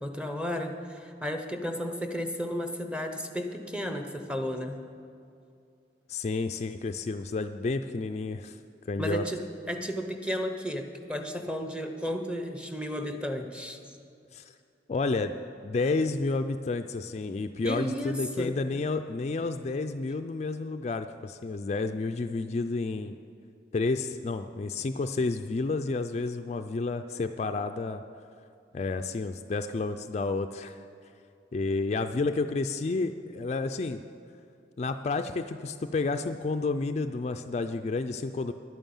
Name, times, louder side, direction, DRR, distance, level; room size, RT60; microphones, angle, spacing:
voice 1, 0.0-4.8 9.0-13.8 17.6-18.6, equal, 5° right, 5 dB, 0.8 m, -33 dB
voice 2, 6.1-8.6 8.9-9.3 14.3-14.4 14.9-15.3 15.6-23.2 23.7-28.0 28.7-30.8 31.5-34.0 34.8-38.5, left 3 dB, 40° left, 7 dB, 0.3 m, -30 dB
11.0 x 9.1 x 7.1 m, 2.5 s
head